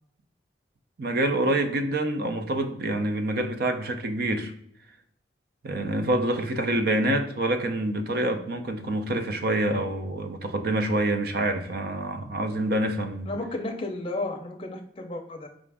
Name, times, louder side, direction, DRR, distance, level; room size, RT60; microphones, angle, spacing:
voice 1, 1.0-4.5 5.6-13.3, right 1 dB, 60° right, 7 dB, 0.5 m, -26 dB
voice 2, 13.3-15.5, left 2 dB, 30° left, 3 dB, 0.6 m, -33 dB
5.0 x 2.5 x 3.4 m, 0.68 s
head